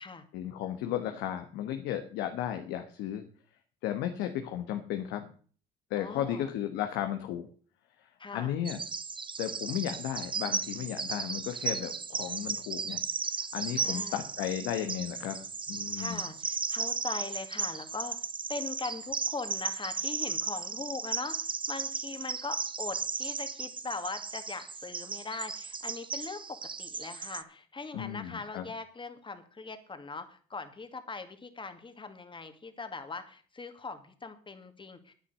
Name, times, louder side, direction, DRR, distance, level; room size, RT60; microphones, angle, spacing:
voice 1, 0.3-3.2 3.8-5.2 5.9-7.5 8.3-8.8 9.4-13.0 13.5-15.4 15.7-16.3 27.9-28.6, left 11 dB, 80° left, 6 dB, 1.4 m, -34 dB
voice 2, 6.0-6.5 8.2-8.6 13.8-14.2 16.0-18.2 18.5-21.4 21.7-35.1, left 4 dB, 25° left, 8 dB, 2.3 m, -40 dB
Bird vocalization bird call bird song, 8.6-27.4, right 5 dB, 25° right, 0.9 m, -35 dB
9.8 x 9.7 x 6.9 m, 0.43 s
supercardioid pair, 70°, 18 cm